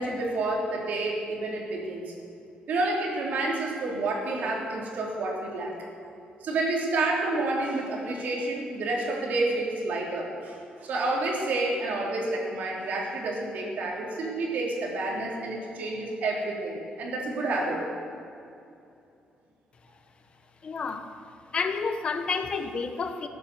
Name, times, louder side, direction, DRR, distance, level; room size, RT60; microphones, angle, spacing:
voice 1, 0.0-2.1 2.7-5.8 6.4-17.8, right 2 dB, 65° right, -1 dB, 3.2 m, -29 dB
voice 2, 20.6-21.1 21.5-23.3, left 5 dB, 35° left, 8 dB, 1.0 m, -30 dB
15.0 x 10.5 x 7.0 m, 2.6 s
cardioid pair, 140°, 3 cm